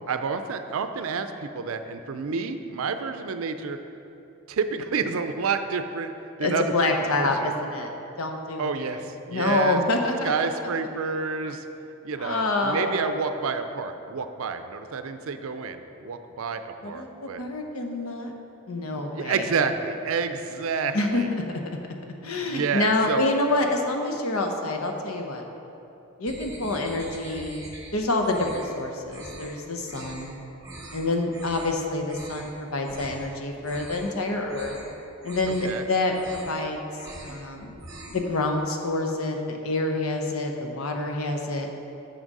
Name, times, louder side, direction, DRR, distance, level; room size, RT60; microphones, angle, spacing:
voice 1, 0.1-3.8 4.5-6.1 6.4-6.7 7.1-7.5 8.6-9.8 10.2-11.6 12.0-17.4 18.9-21.3 22.4-23.3 35.6-35.9, right 5 dB, 75° right, 9 dB, 0.5 m, -29 dB
voice 2, 6.4-7.9 8.2-9.0 9.3-10.5 12.2-13.1 16.8-18.3 18.7-19.4 20.9-21.2 22.2-25.4 26.2-30.4 30.9-34.7 35.2-36.8 37.2-37.7 38.1-41.7, left 2 dB, 80° left, 3 dB, 0.8 m, -27 dB
sound 1, 26.3-27.9 28.2-28.7 29.1-29.5 29.8-30.2 30.6-31.0 31.3-31.7 32.0-32.5 32.8-33.2 33.6-34.1 34.4-34.9 35.2-35.7 36.1-36.6 36.9-37.4 37.7-38.3, right 2 dB, 15° right, 1.0 m, -43 dB
6.7 x 6.2 x 5.3 m, 2.9 s
head